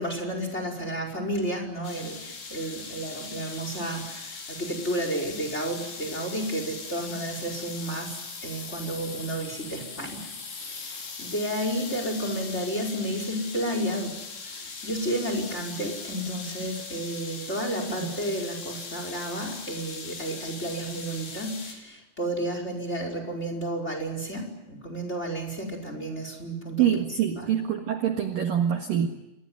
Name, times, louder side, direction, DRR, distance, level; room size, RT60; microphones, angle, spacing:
voice 1, 0.0-10.3 10.6-14.2 14.4-26.9 27.4-27.7, right 1 dB, 15° left, 5 dB, 4.8 m, -32 dB
sound 1, 1.8-21.7, left 4 dB, 50° left, 5.9 m, -40 dB
voice 2, 26.8-29.1, right 9 dB, 60° right, 4 dB, 2.8 m, -25 dB
28.5 x 22.0 x 9.5 m, 0.93 s
omnidirectional pair, 5.5 m